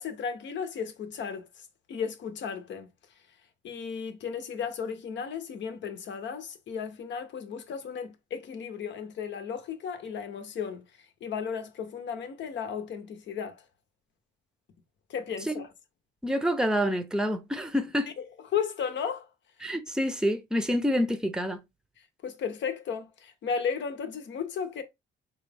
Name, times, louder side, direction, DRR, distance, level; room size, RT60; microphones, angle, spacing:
voice 1, 0.0-1.5 1.9-2.9 3.6-10.8 11.2-13.6 15.1-15.7 18.5-19.3 22.2-24.8, left 6 dB, 65° left, 0.9 m, -34 dB
voice 2, 16.2-18.1 19.6-21.6, equal, 5° right, 0.7 m, -27 dB
4.5 x 2.4 x 3.4 m
cardioid pair, 90°, 20 cm